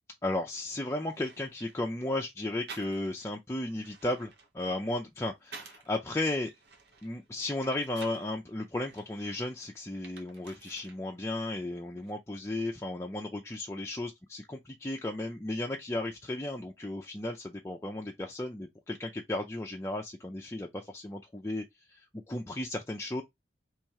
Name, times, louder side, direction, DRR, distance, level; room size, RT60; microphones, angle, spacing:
voice 1, 0.2-6.5 7.0-23.2, left 1 dB, 15° left, 0.5 m, -35 dB
sound 1, 0.6-0.7 1.1-1.8 2.7-3.3 3.7-5.9 6.4-8.3 8.9-11.0 11.3-12.1, right 5 dB, 65° right, 1.0 m, -51 dB
3.1 x 2.9 x 4.6 m
head